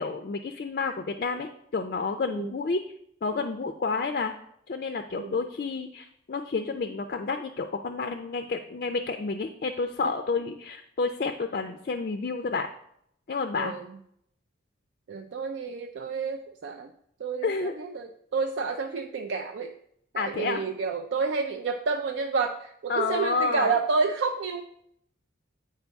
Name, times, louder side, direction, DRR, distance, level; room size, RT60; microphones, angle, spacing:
voice 1, 0.0-2.8 3.2-4.3 4.7-12.7 13.3-13.7 17.4-17.7 20.2-20.6 22.9-23.7, left 4 dB, 50° left, 6 dB, 0.4 m, -30 dB
voice 2, 13.5-13.9 15.1-16.9 17.2-19.7 20.1-24.6, right 4 dB, 70° right, 5 dB, 0.4 m, -29 dB
8.0 x 4.6 x 3.5 m, 0.72 s
head